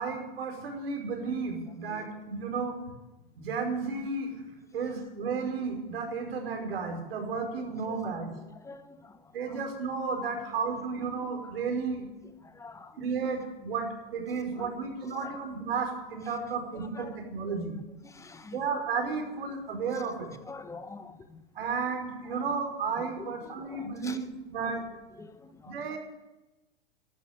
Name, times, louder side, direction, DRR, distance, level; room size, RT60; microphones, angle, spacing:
voice 1, 0.0-2.8 3.4-4.3 4.7-8.3 9.3-12.0 13.0-17.7 18.5-20.3 21.5-24.8 25.6-26.0, right 5 dB, 80° right, 3 dB, 5.1 m, -33 dB
voice 2, 8.5-9.6 10.4-10.5 11.0-11.1 12.2-13.1 14.3-15.4 16.3-16.4 16.7-17.7 18.0-18.6 19.9-21.4 22.2-22.5 23.0-24.2 24.6-24.8 25.1-26.0, left 3 dB, 10° left, 10 dB, 1.2 m, -48 dB
13.0 x 12.5 x 8.8 m, 1.0 s
hypercardioid pair, 125°, 29 cm